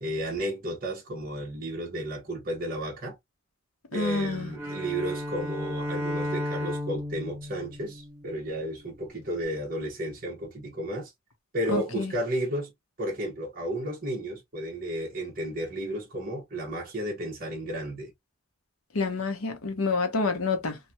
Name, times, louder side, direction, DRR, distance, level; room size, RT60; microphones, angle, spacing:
voice 1, 0.0-3.2 3.9-11.1 11.5-12.7 13.0-18.1, right 1 dB, 40° right, 1.2 m, -33 dB
voice 2, 3.9-4.5 11.7-12.1 18.9-20.8, left 3 dB, 90° left, 0.9 m, -28 dB
Bowed string instrument, 4.5-8.8, left 1 dB, 10° right, 1.0 m, -34 dB
3.3 x 2.3 x 2.8 m
head